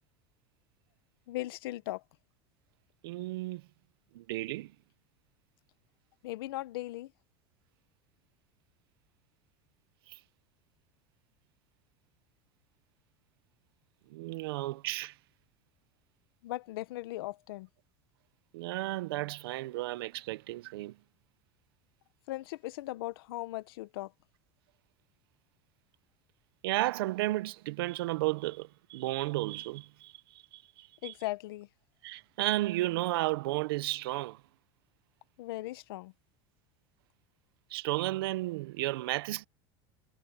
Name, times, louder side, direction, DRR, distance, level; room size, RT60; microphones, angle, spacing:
voice 1, 1.3-2.0 6.2-7.1 16.4-17.7 22.3-24.1 31.0-31.7 35.4-36.1, left 17 dB, 85° left, 1.1 m, -38 dB
voice 2, 3.0-3.6 4.1-4.7 10.1-10.2 14.1-15.2 18.5-21.0 26.6-31.1 32.0-34.4 37.7-39.5, right 18 dB, 85° right, 0.8 m, -33 dB
supercardioid pair, 170°, 12 cm